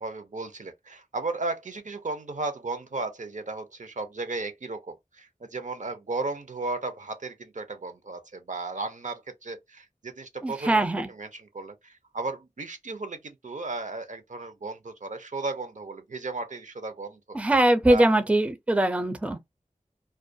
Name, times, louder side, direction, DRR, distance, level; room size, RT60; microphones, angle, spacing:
voice 1, 0.0-17.4 17.9-18.0, right 3 dB, 65° right, 0.5 m, -35 dB
voice 2, 10.4-11.1 17.3-19.4, right 1 dB, 10° right, 0.4 m, -22 dB
2.3 x 2.2 x 2.5 m
wide cardioid pair, 55°, 14 cm